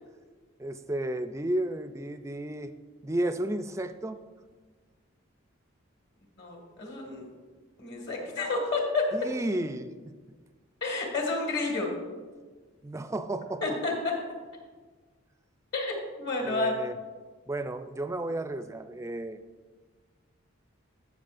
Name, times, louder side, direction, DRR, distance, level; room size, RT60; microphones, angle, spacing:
voice 1, 0.6-2.7 3.0-4.2 9.1-10.1 12.8-13.6 16.4-17.0 17.5-19.4, right 1 dB, 15° right, 9 dB, 0.4 m, -32 dB
voice 2, 6.4-7.2 7.8-9.1 10.8-11.9 13.6-14.2 15.7-16.7, left 3 dB, 55° left, 1 dB, 2.0 m, -30 dB
17.5 x 6.1 x 2.6 m, 1.4 s
head